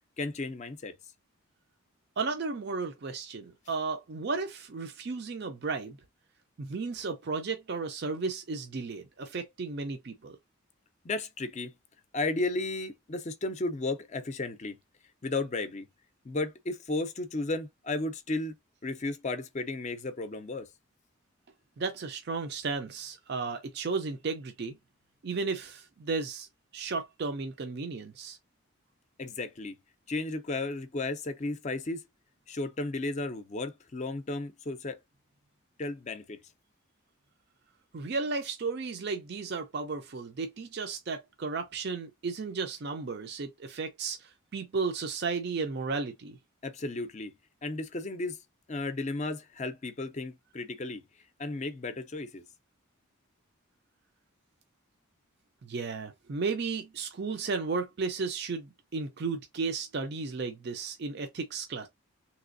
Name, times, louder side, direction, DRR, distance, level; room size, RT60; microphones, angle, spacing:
voice 1, 0.2-0.9 11.0-11.7 12.1-14.8 15.2-15.9 16.2-18.5 18.8-20.7 29.2-29.7 30.1-32.0 32.5-35.0 35.8-36.4 46.6-47.3 47.6-48.4 48.7-51.0 51.4-52.4, left 2 dB, 35° left, 0.5 m, -34 dB
voice 2, 2.2-6.0 6.6-10.4 21.8-24.7 25.2-26.5 26.7-28.4 37.9-46.4 55.6-61.9, right 4 dB, 50° right, 0.5 m, -34 dB
3.3 x 2.9 x 2.5 m
head